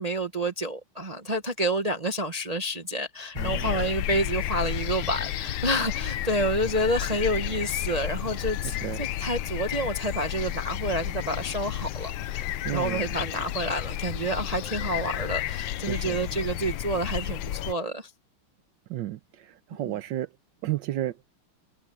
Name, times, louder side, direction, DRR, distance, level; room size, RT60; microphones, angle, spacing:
voice 1, 0.0-12.5 12.7-18.1 19.8-20.0, right 1 dB, 40° right, 0.5 m, -29 dB
sound 1, 3.4-17.7, left 12 dB, 70° left, 1.3 m, -32 dB
voice 2, 3.4-3.7 8.6-9.0 12.6-13.1 15.9-16.2 18.9-20.3 20.6-21.3, right 14 dB, 70° right, 1.3 m, -32 dB
Organ, 5.2-16.4, left 3 dB, 25° right, 5.5 m, -57 dB
omnidirectional pair, 2.3 m